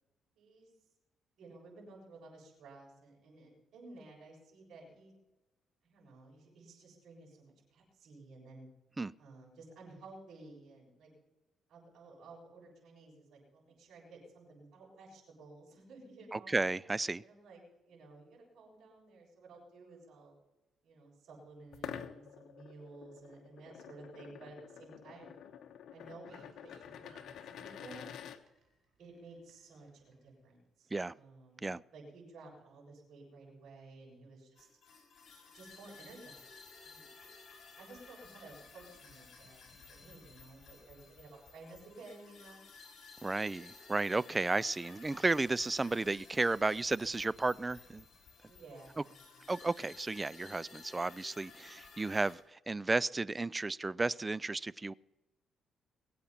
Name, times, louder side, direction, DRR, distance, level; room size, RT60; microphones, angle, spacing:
voice 1, 0.4-0.7 1.4-5.1 5.8-8.7 9.2-11.1 11.7-16.5 17.2-20.3 20.8-25.4 25.9-28.1 29.0-34.7 35.5-36.5 36.8-37.1 37.7-42.6 48.4-49.5, right 3 dB, 70° right, -4 dB, 7.5 m, -54 dB
voice 2, 16.3-17.2 30.9-31.1 31.6-31.8 43.2-48.0 49.5-54.9, right 3 dB, 20° right, 22 dB, 0.4 m, -33 dB
sound 1, 21.7-28.4, left 9 dB, 70° left, 1.2 m, -48 dB
sound 2, 26.2-30.7, right 4 dB, 50° right, 4.9 m, -69 dB
sound 3, 34.6-52.4, left 4 dB, 55° left, 6.2 m, -56 dB
22.0 x 8.6 x 5.9 m, 1.0 s
cardioid pair, 90°, 0 cm